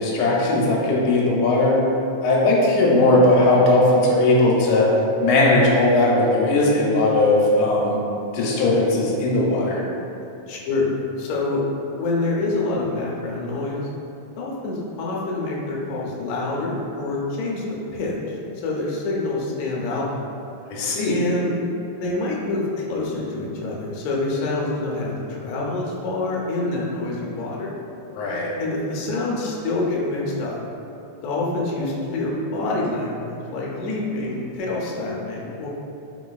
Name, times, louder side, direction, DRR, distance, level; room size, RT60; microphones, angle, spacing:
voice 1, 0.0-1.8 2.2-4.9 5.2-8.0 8.3-9.8 20.7-21.3 28.1-28.5, left 2 dB, 90° left, -4 dB, 2.1 m, -18 dB
voice 2, 10.5-11.6 12.0-13.9 14.4-18.2 18.6-20.3 21.1-21.5 22.0-27.8 28.6-30.6 31.2-35.7, left 2 dB, 75° left, -4 dB, 1.7 m, -26 dB
4.7 x 3.8 x 2.3 m, 2.8 s
omnidirectional pair, 3.5 m